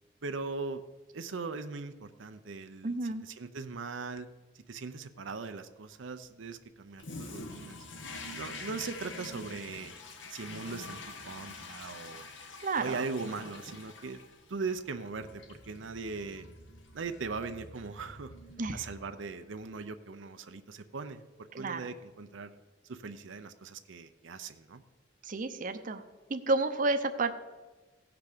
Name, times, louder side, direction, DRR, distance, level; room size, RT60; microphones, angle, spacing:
voice 1, 0.2-0.8 1.1-3.0 3.2-4.3 4.5-7.9 8.3-9.9 10.3-12.3 12.7-14.2 14.5-16.5 16.9-18.3 18.7-22.5 22.8-24.8, right 4 dB, 85° right, 9 dB, 0.7 m, -40 dB
voice 2, 2.8-3.2 12.6-13.0 18.6-18.8 21.5-21.9 25.2-26.0 26.3-27.3, right 3 dB, 45° right, 9 dB, 0.7 m, -31 dB
Toilet flush, 7.0-19.3, left 2 dB, 80° left, 1.3 m, -46 dB
16.0 x 5.9 x 6.7 m, 1.2 s
head